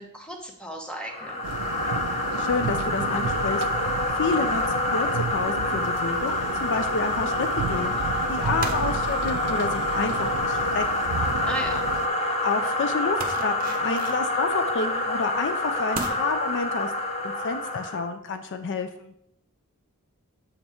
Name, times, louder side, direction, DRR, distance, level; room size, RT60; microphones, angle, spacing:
voice 1, 0.0-1.4 11.4-11.9, right 1 dB, 5° left, 1 dB, 1.1 m, -35 dB
sound 1, 1.1-18.1, left 2 dB, 30° left, 0.9 m, -27 dB
sound 2, 1.4-12.1, right 6 dB, 90° right, 0.4 m, -33 dB
voice 2, 2.4-3.6 4.2-10.8 12.4-16.9 17.2-19.1, left 4 dB, 55° left, 8 dB, 0.5 m, -29 dB
sound 3, 6.2-6.5 7.4-7.6 7.9-11.8 12.1-12.2 12.5-12.7 13.2-15.0 15.4-15.5 15.9-16.1, right 4 dB, 40° right, 0.9 m, -38 dB
7.2 x 5.5 x 4.4 m, 0.77 s
head